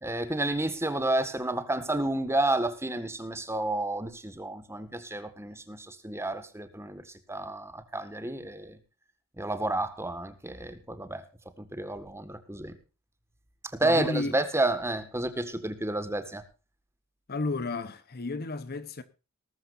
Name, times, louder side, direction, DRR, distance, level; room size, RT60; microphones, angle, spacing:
voice 1, 0.0-7.0 7.3-8.8 9.4-11.2 11.6-12.7 13.7-16.4, right 2 dB, 10° right, 1.6 m, -30 dB
voice 2, 13.8-14.4 17.3-19.0, left 3 dB, 45° left, 1.0 m, -32 dB
19.5 x 13.0 x 2.6 m
head